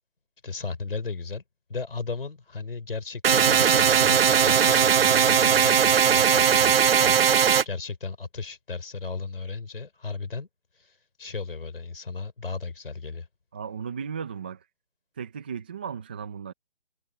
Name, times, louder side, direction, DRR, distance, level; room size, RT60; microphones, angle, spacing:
voice 1, 0.4-1.4 1.7-7.2 7.6-10.5 10.8-13.3, left 4 dB, 70° left, 4.8 m, -35 dB
sound 1, 3.2-7.6, right 8 dB, 80° right, 0.5 m, -19 dB
voice 2, 13.5-14.7 15.2-16.5, right 7 dB, 10° right, 0.5 m, -35 dB
figure-of-eight pair, 160°, 29 cm